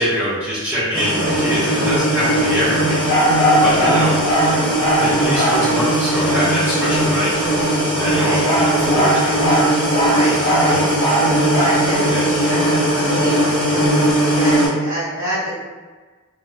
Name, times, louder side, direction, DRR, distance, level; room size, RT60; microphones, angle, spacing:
voice 1, 0.0-3.0 3.6-4.2 5.0-7.3 8.0-9.4 10.2-10.9 12.1-12.3, equal, 10° right, -13 dB, 1.2 m, -23 dB
sound 1, 0.9-14.7, right 1 dB, 20° left, 1.2 m, -19 dB
sound 2, 3.0-5.7 7.8-11.9, equal, 85° left, 0.9 m, -19 dB
voice 2, 8.1-8.5 10.1-10.8 11.5-15.5, equal, 60° right, -11 dB, 0.8 m, -27 dB
2.5 x 2.5 x 2.2 m, 1.4 s
head